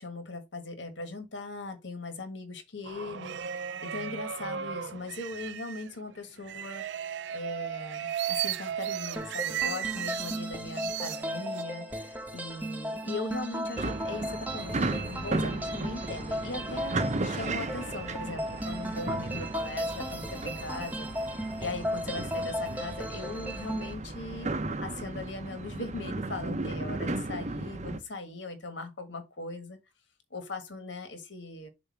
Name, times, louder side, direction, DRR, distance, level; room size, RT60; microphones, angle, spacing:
voice 1, 0.0-24.5 24.8-29.8 30.3-31.7, left 3 dB, 85° left, 1.6 m, -39 dB
sound 1, 2.9-5.9 6.5-10.4 10.8-11.6, right 9 dB, 75° right, 0.4 m, -35 dB
sound 2, 9.2-23.9, equal, 10° right, 0.9 m, -36 dB
sound 3, 13.8-28.0, right 2 dB, 40° right, 0.7 m, -35 dB
6.9 x 2.7 x 5.7 m
head